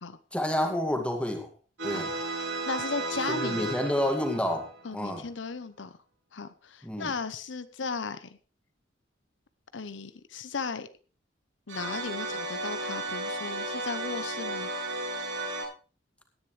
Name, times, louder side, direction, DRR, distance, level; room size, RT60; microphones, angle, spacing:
voice 1, 0.3-1.5 1.8-2.1 3.3-4.7 4.9-5.2 6.8-7.1, left 1 dB, 5° left, 3 dB, 2.2 m, -29 dB
sound 1, 1.8-4.9 11.7-15.6, right 2 dB, 90° right, 6.8 m, -34 dB
voice 2, 2.7-3.9 4.8-6.0 6.3-8.4 9.7-10.9 11.7-14.7, left 4 dB, 75° left, 12 dB, 0.7 m, -36 dB
18.0 x 10.5 x 3.3 m, 0.37 s
head